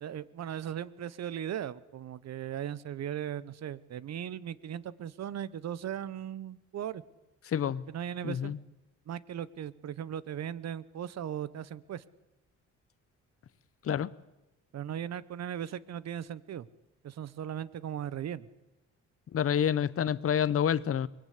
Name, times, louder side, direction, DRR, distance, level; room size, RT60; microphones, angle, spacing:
voice 1, 0.0-7.0 7.9-8.5 9.1-12.0 14.7-16.7 17.0-18.5, right 10 dB, 60° right, 18 dB, 1.0 m, -38 dB
voice 2, 7.5-7.8 8.2-8.6 13.8-14.1 19.3-21.1, left 9 dB, 50° left, 18 dB, 0.9 m, -28 dB
23.5 x 20.0 x 8.5 m, 0.98 s
cardioid pair, 90°, 30 cm